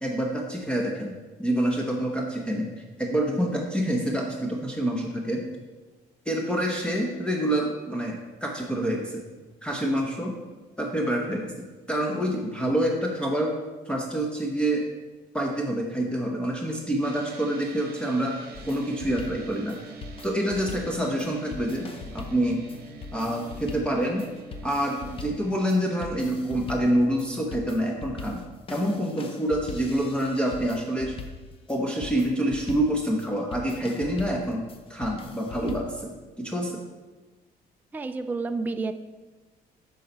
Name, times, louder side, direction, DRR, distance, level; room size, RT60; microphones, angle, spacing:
voice 1, 0.0-1.1 1.4-2.7 3.0-5.4 6.3-9.2 9.6-10.3 10.8-13.5 13.9-14.8 15.3-18.4 18.7-19.8 20.2-21.9 22.1-22.6 23.1-24.2 24.6-28.4 28.7-31.1 31.7-34.6 34.9-36.8, right 1 dB, 5° left, -1 dB, 0.9 m, -27 dB
sound 1, 17.0-27.1, right 3 dB, 65° right, 0.9 m, -46 dB
sound 2, 18.5-36.0, left 4 dB, 35° left, 0.7 m, -42 dB
voice 2, 37.9-38.9, right 3 dB, 10° right, 9 dB, 0.3 m, -29 dB
7.5 x 4.0 x 5.4 m, 1.2 s
cardioid pair, 110°, 17 cm